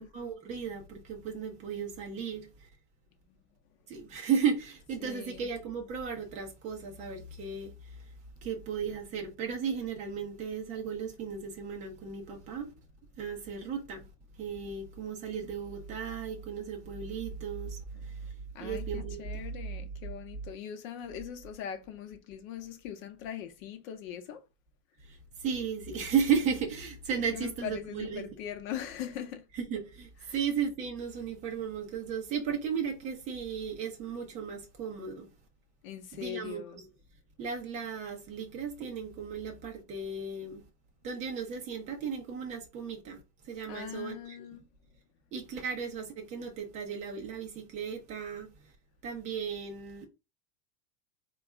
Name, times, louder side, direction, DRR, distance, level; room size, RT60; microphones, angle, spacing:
voice 1, 0.0-2.5 3.9-8.0 8.4-12.7 13.2-14.1 14.4-18.3 18.6-19.3 25.1-28.3 29.5-35.3 36.1-36.8 37.4-40.6 41.0-43.2 43.4-44.4 45.3-48.5 49.0-50.1, right 6 dB, 15° right, 0.4 m, -35 dB
voice 2, 5.0-5.5 17.9-18.1 18.5-24.4 27.2-29.4 35.8-36.8 43.7-44.6, left 10 dB, 55° left, 0.8 m, -41 dB
4.0 x 2.4 x 3.4 m
supercardioid pair, 155°, 49 cm